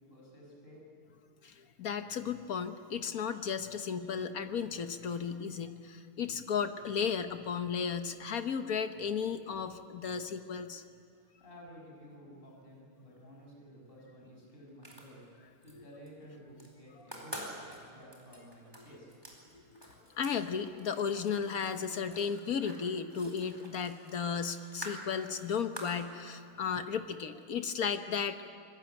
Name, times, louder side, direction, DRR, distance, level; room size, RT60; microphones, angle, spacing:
voice 1, 0.1-0.8 11.4-15.3 15.6-17.3 17.6-19.1, equal, 25° left, -1 dB, 6.1 m, -53 dB
voice 2, 1.4-10.8 15.7-15.8 19.7-19.8 20.1-28.5, left 6 dB, 50° left, 9 dB, 1.2 m, -34 dB
sound 1, 14.7-15.7 16.1-16.7 17.0-20.4 20.6-26.0, equal, 10° right, 4.4 m, -47 dB
26.0 x 20.5 x 9.1 m, 2.2 s
omnidirectional pair, 2.4 m